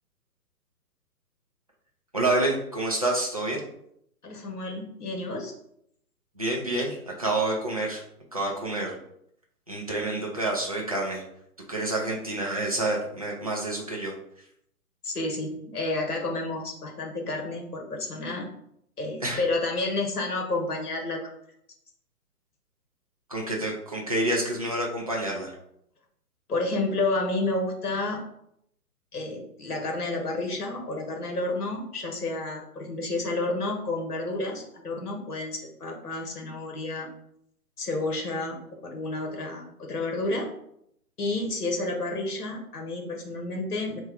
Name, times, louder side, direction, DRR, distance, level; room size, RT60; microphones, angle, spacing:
voice 1, 2.1-3.6 6.4-8.0 8.3-9.0 9.7-11.2 11.7-14.1 19.2-19.4 23.3-25.5, right 2 dB, 25° right, -3 dB, 0.4 m, -28 dB
voice 2, 4.2-5.5 15.0-18.5 19.0-21.2 26.5-28.2 29.1-37.1 37.8-40.5 41.2-44.0, left 2 dB, 70° left, 1 dB, 1.3 m, -30 dB
3.5 x 2.3 x 4.4 m, 0.73 s
figure-of-eight pair, 135°, 48 cm